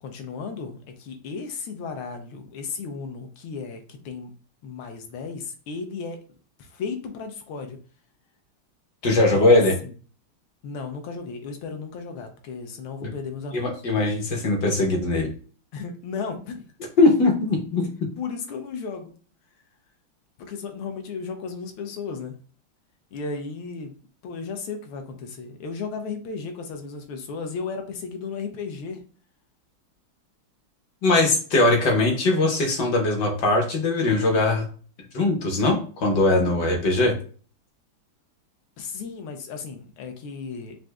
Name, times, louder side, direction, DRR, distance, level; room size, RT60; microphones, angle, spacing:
voice 1, 0.0-4.3 4.6-6.2 6.6-7.8 9.3-9.9 10.6-13.7 15.7-16.7 18.2-19.1 20.4-22.4 23.1-23.9 24.2-29.0 38.8-40.8, left 5 dB, 75° left, 6 dB, 1.5 m, -34 dB
voice 2, 9.0-9.7 13.0-13.1 13.5-15.3 17.0-18.1 31.0-34.6 35.1-37.1, left 2 dB, 60° left, 1 dB, 1.4 m, -20 dB
6.2 x 2.6 x 2.3 m, 0.41 s
omnidirectional pair, 2.4 m